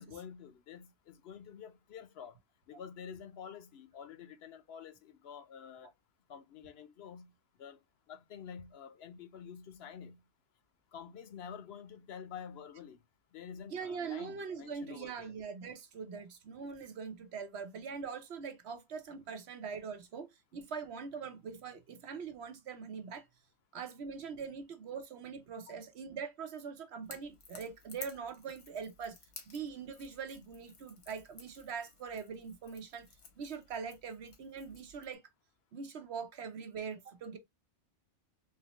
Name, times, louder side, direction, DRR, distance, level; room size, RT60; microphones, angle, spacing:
voice 1, 0.0-2.4 2.7-5.9 6.3-7.3 7.6-7.8 8.1-10.2 10.9-13.0 13.3-15.3, left 7 dB, 65° left, 0.9 m, -48 dB
voice 2, 13.7-23.3 23.7-29.2 29.5-33.1 33.4-35.2 35.7-37.4, right 6 dB, 65° right, 1.0 m, -42 dB
Crackle / Crack, 27.0-35.1, left 4 dB, 85° left, 1.4 m, -54 dB
3.8 x 3.0 x 2.9 m
omnidirectional pair, 1.2 m